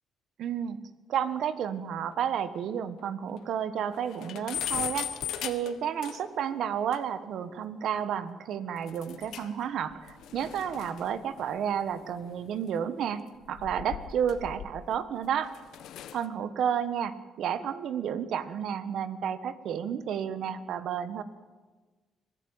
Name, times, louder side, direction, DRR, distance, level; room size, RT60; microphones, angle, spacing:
voice 1, 0.4-0.8 1.1-15.5 16.1-21.2, right 8 dB, 75° right, 12 dB, 1.4 m, -31 dB
sound 1, 2.1-2.2 2.6-2.7 3.0-3.1 3.4-3.5 3.9-6.4 6.9-7.0 8.9-9.6 9.9-12.6 13.4-15.0 15.4-16.3, left 11 dB, 85° left, 1.4 m, -39 dB
24.5 x 16.5 x 9.0 m, 1.3 s
cardioid pair, 90°, 0 cm